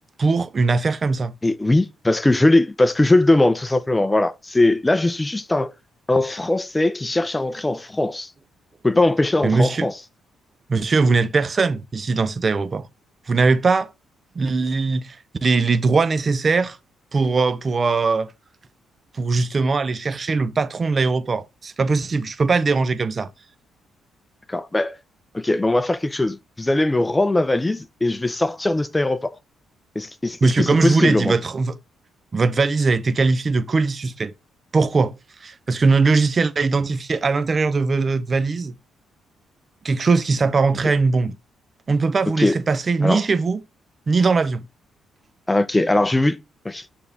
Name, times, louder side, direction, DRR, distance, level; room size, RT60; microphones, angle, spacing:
voice 1, 0.2-1.3 9.4-9.9 10.7-12.9 13.3-13.9 14.4-16.8 17.1-18.3 19.1-23.3 30.4-31.8 32.3-34.3 34.7-35.1 35.4-38.7 39.8-41.3 41.9-43.6 44.1-44.7, right 4 dB, 35° right, 0.6 m, -20 dB
voice 2, 1.4-5.7 6.1-8.3 8.8-9.9 24.5-25.0 25.3-29.3 30.0-31.3 42.4-42.5 43.0-43.2 45.5-46.4 46.6-46.8, left 2 dB, 15° left, 0.7 m, -20 dB
6.8 x 3.6 x 4.0 m
cardioid pair, 90°, 0 cm